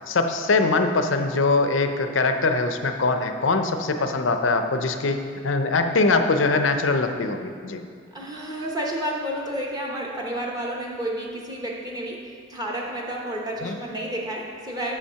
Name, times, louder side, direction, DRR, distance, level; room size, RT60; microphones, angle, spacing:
voice 1, 0.0-7.8 13.6-13.7, left 3 dB, 75° left, 7 dB, 0.6 m, -22 dB
voice 2, 8.1-15.0, right 1 dB, 20° right, -3 dB, 0.9 m, -31 dB
7.0 x 5.7 x 5.7 m, 2.1 s
head